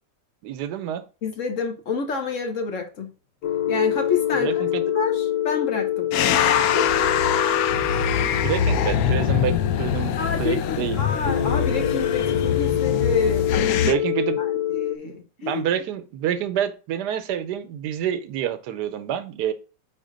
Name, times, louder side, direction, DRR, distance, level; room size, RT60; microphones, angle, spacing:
voice 1, 0.4-1.0 4.4-4.8 8.3-11.0 13.8-14.4 15.0-15.1 15.4-19.5, right 10 dB, 75° right, 1.2 m, -27 dB
voice 2, 1.2-3.1 3.7-4.6 4.9-7.1 10.2-14.0 14.4-15.6, left 4 dB, 55° left, 1.1 m, -29 dB
sound 1, 3.4-15.0, left 10 dB, 90° left, 1.3 m, -26 dB
sound 2, 6.1-13.9, left 8 dB, 70° left, 0.9 m, -23 dB
4.9 x 4.1 x 5.1 m
omnidirectional pair, 1.8 m